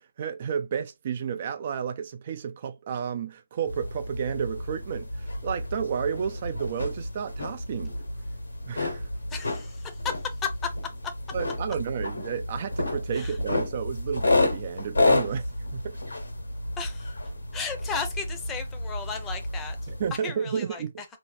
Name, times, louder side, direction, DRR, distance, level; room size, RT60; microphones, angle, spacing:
voice 1, 0.0-7.9 8.7-9.1 11.3-16.0 19.9-20.9, right 7 dB, 40° right, 0.3 m, -32 dB
sound 1, 3.7-20.2, left 2 dB, 90° left, 1.3 m, -30 dB
voice 2, 9.3-10.7 11.0-11.1 13.1-13.4 16.8-17.1 17.5-19.8 20.2-21.1, left 6 dB, 10° left, 0.6 m, -34 dB
2.8 x 2.3 x 3.9 m
hypercardioid pair, 155°, 0 cm